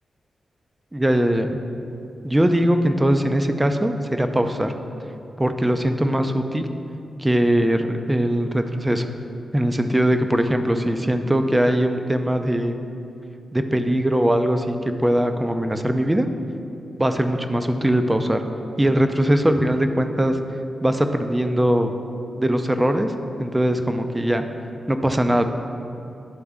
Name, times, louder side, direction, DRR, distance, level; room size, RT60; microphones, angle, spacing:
voice 1, 0.9-1.6 2.2-4.7 5.4-6.7 7.2-9.1 9.5-12.8 13.5-16.3 17.0-18.4 18.8-20.4 20.8-21.9 22.4-23.1 23.4-24.4 24.9-25.5, right 1 dB, 15° right, 7 dB, 0.6 m, -21 dB
11.0 x 3.9 x 3.6 m, 2.6 s
cardioid pair, 55°, 0 cm